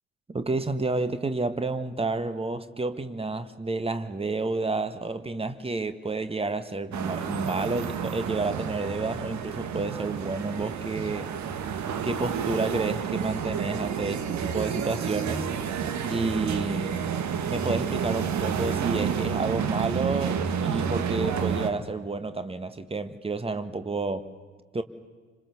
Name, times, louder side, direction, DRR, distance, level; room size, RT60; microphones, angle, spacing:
voice 1, 0.3-11.3 12.0-15.5 16.1-17.0 17.5-24.3 24.7-24.8, right 3 dB, 15° right, 1.6 m, -30 dB
sound 1, 6.9-21.7, right 7 dB, 50° right, 2.0 m, -30 dB
29.5 x 26.0 x 7.1 m
figure-of-eight pair, 50°, 37 cm